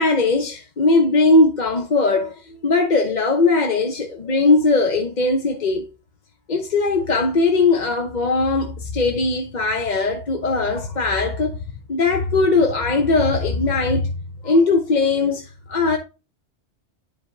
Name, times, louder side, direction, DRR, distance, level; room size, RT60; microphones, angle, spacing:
voice 1, 0.0-5.9 6.5-11.6 11.9-14.1 14.4-16.0, left 3 dB, 45° left, 0.9 m, -19 dB
11.0 x 4.9 x 2.6 m
omnidirectional pair, 1.2 m